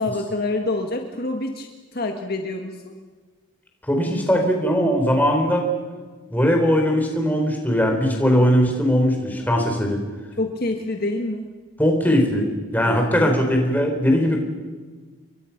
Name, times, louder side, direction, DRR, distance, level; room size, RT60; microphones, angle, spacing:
voice 1, 0.0-2.9 10.4-11.5 12.8-13.3, left 2 dB, 45° left, 3 dB, 1.7 m, -27 dB
voice 2, 3.9-5.7 6.3-10.0 11.8-12.5 12.7-14.4, equal, 10° left, 2 dB, 4.2 m, -19 dB
29.5 x 22.5 x 6.0 m, 1.4 s
head